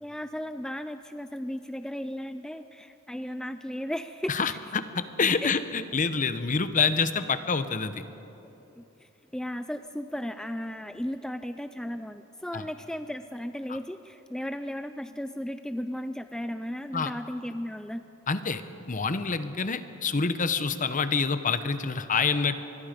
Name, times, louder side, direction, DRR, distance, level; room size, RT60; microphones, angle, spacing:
voice 1, 0.0-4.6 5.4-5.5 8.8-18.0, equal, 5° left, 10 dB, 0.4 m, -35 dB
voice 2, 4.3-8.0 12.5-12.6 13.7-13.8 16.9-17.1 18.3-18.6 18.9-22.6, left 5 dB, 40° left, 11 dB, 0.9 m, -27 dB
25.0 x 21.0 x 5.2 m, 2.9 s
head